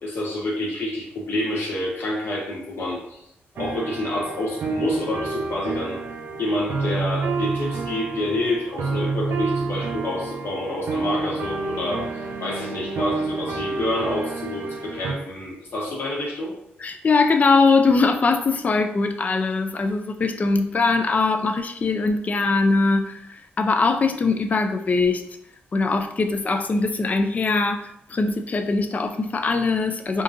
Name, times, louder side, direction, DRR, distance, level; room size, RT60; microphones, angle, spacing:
voice 1, 0.0-3.2 3.5-6.0 6.4-12.0 12.4-16.6, left 1 dB, 65° left, -3 dB, 1.1 m, -28 dB
sound 1, 3.6-15.1, right 4 dB, 70° right, 0.7 m, -29 dB
voice 2, 16.8-25.2 25.7-27.8 28.1-30.2, left 3 dB, 40° left, 7 dB, 0.4 m, -21 dB
3.7 x 2.7 x 2.5 m, 0.77 s
cardioid pair, 100°, 4 cm